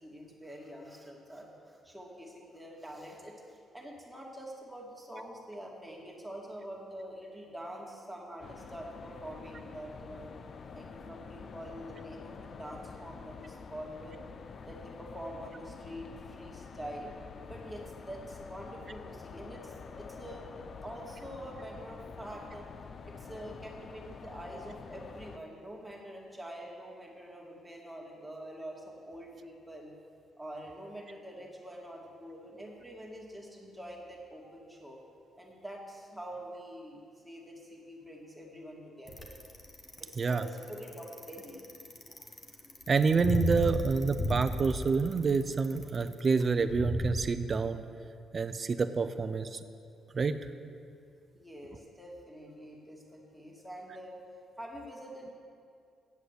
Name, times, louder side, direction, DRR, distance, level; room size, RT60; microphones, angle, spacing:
voice 1, 0.0-10.3 10.7-14.2 14.7-17.1 17.4-20.5 20.8-22.7 23.0-29.9 30.4-35.0 35.4-39.3 40.0-41.6 51.3-54.2 54.6-55.3, equal, ahead, -2 dB, 2.1 m, -45 dB
sound 1, 8.4-25.4, left 5 dB, 50° left, 0.5 m, -47 dB
Bicycle, 39.1-47.2, left 1 dB, 30° left, 1.2 m, -34 dB
voice 2, 42.9-47.8 48.3-49.6 50.1-50.4, right 5 dB, 40° right, 11 dB, 0.6 m, -28 dB
8.3 x 7.7 x 8.1 m, 2.4 s
cardioid pair, 90°, 0 cm